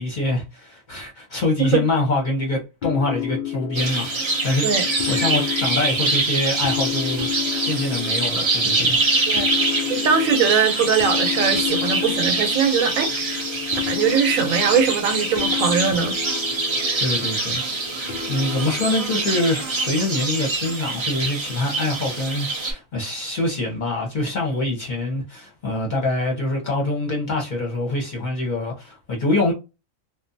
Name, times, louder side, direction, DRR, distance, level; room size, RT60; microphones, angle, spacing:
voice 1, 0.0-4.6 5.1-7.3 7.6-9.0 17.0-17.9 18.3-29.5, left 2 dB, 45° left, 0.7 m, -25 dB
sound 1, 2.8-20.3, left 11 dB, 75° left, 0.4 m, -31 dB
sound 2, 3.7-22.7, right 3 dB, 50° right, 0.3 m, -24 dB
voice 2, 9.9-13.4 13.9-16.1 16.9-17.0, right 6 dB, 80° right, 1.1 m, -21 dB
2.6 x 2.1 x 2.6 m
omnidirectional pair, 1.4 m